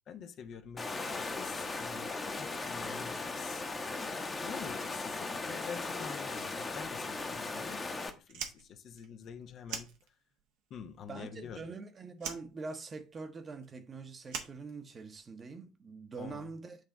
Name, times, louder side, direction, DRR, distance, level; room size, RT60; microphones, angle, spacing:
voice 1, 0.1-3.6 4.4-9.9 10.7-11.7 16.2-16.5, left 7 dB, 45° left, 0.7 m, -47 dB
Water, 0.8-8.1, left 3 dB, 25° left, 1.0 m, -38 dB
Fire, 8.2-10.5 10.8-11.8 12.2-15.3, right 7 dB, 55° right, 1.0 m, -44 dB
voice 2, 11.1-16.8, right 4 dB, 30° right, 1.0 m, -44 dB
8.0 x 3.4 x 4.0 m
figure-of-eight pair, 60°, 0 cm